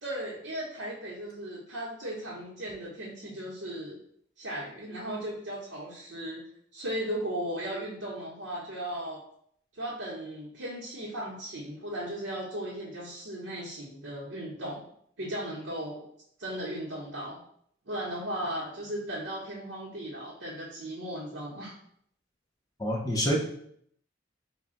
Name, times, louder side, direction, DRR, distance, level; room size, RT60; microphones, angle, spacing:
voice 1, 0.0-4.0 4.4-6.4 6.7-9.2 9.7-14.8 15.2-16.0 16.4-17.4 17.9-21.7, right 1 dB, 85° right, -7 dB, 0.8 m, -36 dB
voice 2, 22.8-23.4, equal, 20° left, 0 dB, 0.5 m, -26 dB
4.1 x 2.1 x 3.7 m, 0.67 s
head